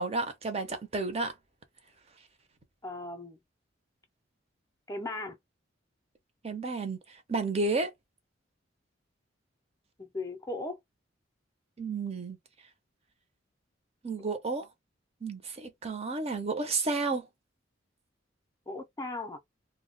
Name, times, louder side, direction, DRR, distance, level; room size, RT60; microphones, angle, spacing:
voice 1, 0.0-1.3 6.4-7.0 7.3-7.9 11.8-12.4 14.0-14.7 15.2-17.3, right 3 dB, 35° right, 0.6 m, -31 dB
voice 2, 2.8-3.4 4.9-5.4 10.0-10.8 18.7-19.4, left 2 dB, 20° left, 0.4 m, -37 dB
2.2 x 2.1 x 3.7 m
head